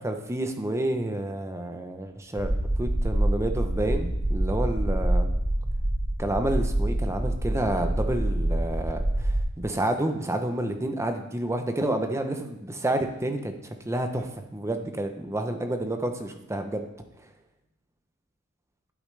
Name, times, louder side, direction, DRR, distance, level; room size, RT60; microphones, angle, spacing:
voice 1, 0.0-2.5 2.8-5.3 6.2-13.5 13.9-16.9, right 1 dB, 15° right, 6 dB, 0.7 m, -29 dB
sound 1, 2.4-9.4, right 1 dB, 30° right, 1.4 m, -26 dB
8.6 x 8.5 x 3.3 m, 0.91 s
head